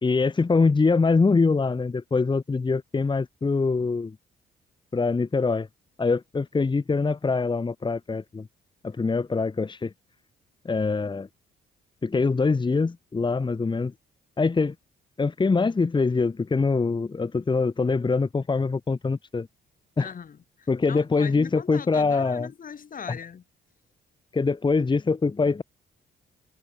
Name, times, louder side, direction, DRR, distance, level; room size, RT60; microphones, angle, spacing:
voice 1, 0.0-4.1 4.9-5.7 6.0-8.5 8.8-9.9 10.6-11.3 12.0-13.9 14.4-14.7 15.2-19.5 20.0-20.1 20.7-22.5 23.1-23.2 24.3-25.6, left 4 dB, 25° left, 1.3 m, -24 dB
voice 2, 20.0-23.4, left 7 dB, 45° left, 1.6 m, -40 dB
cardioid pair, 90°, 20 cm